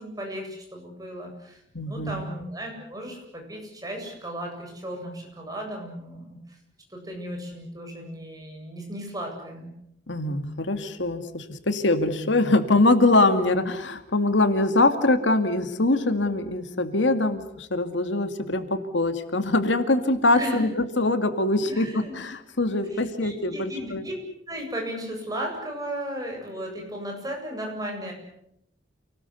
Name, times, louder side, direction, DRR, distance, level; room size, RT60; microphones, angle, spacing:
voice 1, 0.0-6.6 6.9-9.7 20.3-20.7 21.7-22.1 22.9-24.1 24.5-28.1, equal, 20° right, 1 dB, 8.0 m, -35 dB
voice 2, 1.7-2.2 10.1-24.0, left 2 dB, 85° left, 8 dB, 2.3 m, -23 dB
28.5 x 19.5 x 8.3 m, 0.76 s
head